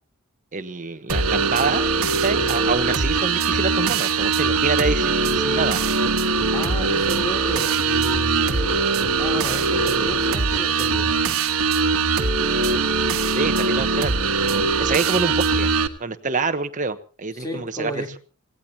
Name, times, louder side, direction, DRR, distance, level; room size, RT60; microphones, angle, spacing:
voice 1, 0.5-1.9 2.2-5.8 13.3-14.1 14.8-15.7 16.0-18.2, right 4 dB, 35° right, 9 dB, 1.0 m, -26 dB
sound 1, 1.1-15.9, right 4 dB, 70° right, 1.4 m, -21 dB
voice 2, 6.5-11.2 17.3-18.1, equal, 15° left, 1 dB, 3.4 m, -32 dB
27.5 x 17.0 x 2.8 m, 0.36 s
head